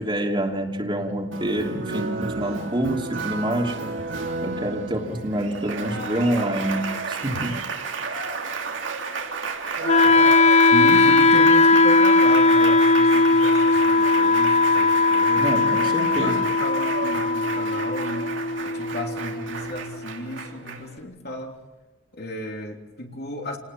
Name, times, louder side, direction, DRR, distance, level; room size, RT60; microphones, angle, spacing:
voice 1, 0.0-3.7 4.4-7.6 15.4-16.4, right 1 dB, 25° right, 1 dB, 2.9 m, -26 dB
Applause, 1.3-21.0, right 4 dB, 85° right, 2.8 m, -32 dB
Wind instrument woodwind instrument, 9.8-19.9, left 3 dB, 35° left, 0.7 m, -18 dB
voice 2, 10.7-15.7 16.0-18.4 18.6-21.6 22.1-23.6, left 1 dB, 55° left, 2 dB, 3.3 m, -34 dB
28.5 x 19.5 x 7.4 m, 1.1 s
head